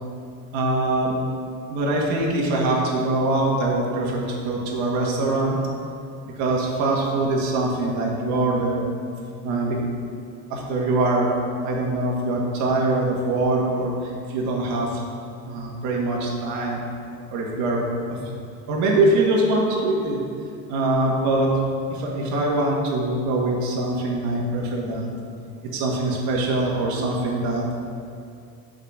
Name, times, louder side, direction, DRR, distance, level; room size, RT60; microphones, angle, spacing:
voice 1, 0.5-1.1 1.7-5.6 6.3-8.9 9.4-9.8 10.5-11.3 11.6-15.0 15.5-16.8 17.3-17.8 18.1-18.2 18.7-20.2 20.7-21.5 21.9-25.1 25.7-27.6, right 2 dB, 65° right, -2 dB, 1.8 m, -23 dB
6.4 x 5.1 x 6.2 m, 2.3 s
cardioid pair, 150°, 31 cm